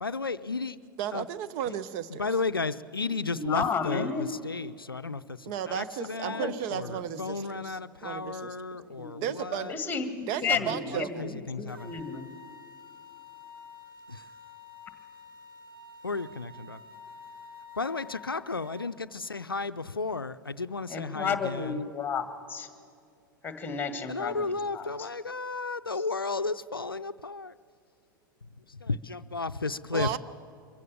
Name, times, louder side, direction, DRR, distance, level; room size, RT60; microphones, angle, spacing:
voice 1, 0.0-0.8 1.1-1.2 2.2-9.7 10.5-11.9 14.1-14.2 16.0-16.8 17.8-21.9 24.1-27.5 28.7-30.2, left 3 dB, 85° left, 13 dB, 0.4 m, -33 dB
voice 2, 1.0-2.2 5.5-8.6 9.2-9.7 10.3-11.3 29.9-30.2, right 10 dB, 45° right, 12 dB, 0.7 m, -34 dB
voice 3, 3.3-4.3 6.3-6.5 7.1-7.2 9.0-9.2 9.7-11.3 11.6-12.3 20.9-22.2 22.5-22.7 23.4-25.1, left 5 dB, 15° left, 10 dB, 1.7 m, -32 dB
sound 1, 11.7-18.9, left 4 dB, 80° right, 1.7 m, -49 dB
23.5 x 16.0 x 7.2 m, 2.3 s
figure-of-eight pair, 90°, 12 cm